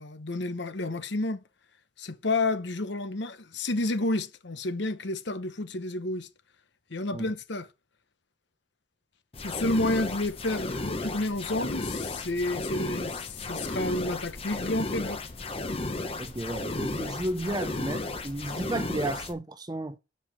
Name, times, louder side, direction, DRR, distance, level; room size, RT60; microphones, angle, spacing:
voice 1, 0.0-1.4 2.0-6.3 6.9-7.7 9.4-15.2, left 2 dB, 60° left, 1.0 m, -30 dB
sound 1, 9.3-19.3, left 2 dB, 30° left, 0.9 m, -34 dB
voice 2, 16.2-20.0, right 1 dB, 20° right, 0.5 m, -33 dB
7.9 x 5.6 x 7.4 m
head